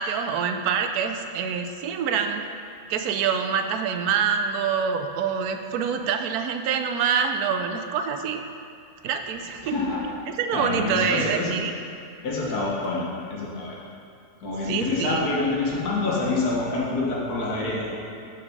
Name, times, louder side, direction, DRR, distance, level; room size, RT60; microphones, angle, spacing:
voice 1, 0.0-2.4 2.9-8.4 9.0-9.7 10.3-11.7 14.7-15.2, right 6 dB, 80° right, 7 dB, 1.0 m, -26 dB
voice 2, 9.6-10.0 10.5-11.5 12.2-13.1 13.3-13.8 14.4-17.9, left 3 dB, 80° left, -4 dB, 1.8 m, -26 dB
7.0 x 4.8 x 5.3 m, 2.5 s
omnidirectional pair, 1.6 m